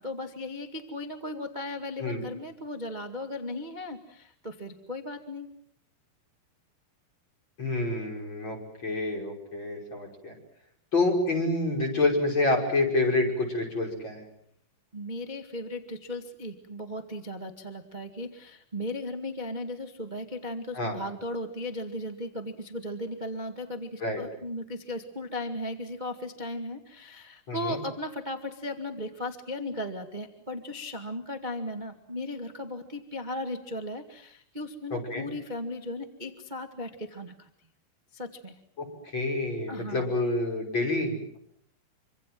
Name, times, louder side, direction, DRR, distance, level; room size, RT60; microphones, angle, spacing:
voice 1, 0.0-5.5 14.9-37.5 38.1-38.6 39.7-40.1, left 1 dB, 45° right, 6 dB, 0.5 m, -36 dB
voice 2, 7.6-10.3 10.9-14.2 20.7-21.0 24.0-24.2 27.5-27.8 34.9-35.2 38.8-41.4, left 2 dB, 25° left, 3 dB, 6.2 m, -28 dB
27.5 x 25.5 x 7.7 m, 0.70 s
omnidirectional pair, 4.8 m